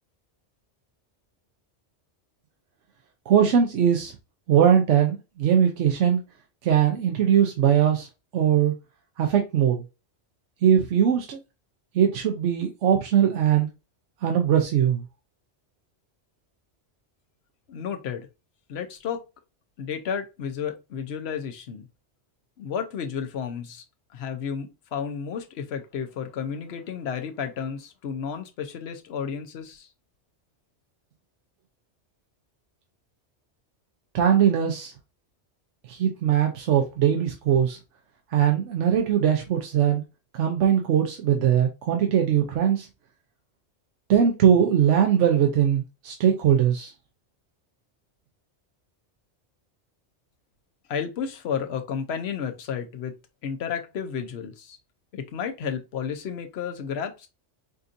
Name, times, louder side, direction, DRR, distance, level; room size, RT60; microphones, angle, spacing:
voice 1, 3.3-4.1 4.5-6.2 6.6-8.1 8.3-8.7 9.2-9.8 10.6-11.4 11.9-13.7 14.2-15.0 34.1-34.9 35.9-37.8 38.3-40.0 40.3-42.9 44.1-46.9, right 9 dB, 80° right, 1.0 m, -21 dB
voice 2, 17.7-18.3 18.7-19.2 19.8-21.9 22.6-23.8 24.1-29.9 50.9-53.1 53.4-54.8 55.1-57.3, left 7 dB, 70° left, 0.9 m, -32 dB
5.2 x 2.6 x 2.5 m
omnidirectional pair, 1.2 m